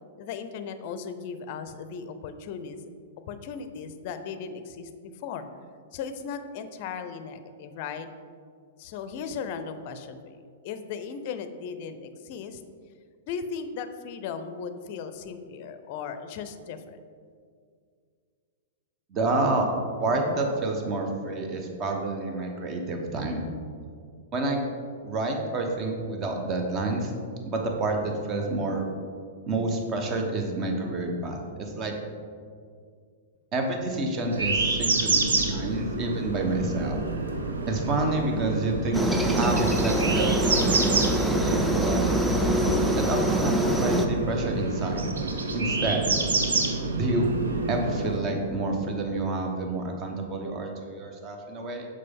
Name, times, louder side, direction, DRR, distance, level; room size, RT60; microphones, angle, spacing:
voice 1, 0.2-2.8 3.3-4.9 5.2-5.5 5.9-8.1 8.8-12.6 13.3-17.0, left 6 dB, 50° left, 10 dB, 0.5 m, -37 dB
voice 2, 19.1-19.7 20.0-23.5 24.3-24.6 25.0-27.1 27.5-28.8 29.5-31.9 33.5-37.0 37.7-39.0 39.3-42.0 43.0-45.1 45.5-46.1 47.0-47.4 47.7-51.9, right 2 dB, 30° right, 3 dB, 1.0 m, -29 dB
sound 1, 34.3-48.2, right 3 dB, 80° right, 0.8 m, -28 dB
Aircraft, 38.9-44.1, right 1 dB, 5° right, 0.5 m, -24 dB
6.6 x 4.9 x 3.6 m, 2.1 s
hypercardioid pair, 105°, 0 cm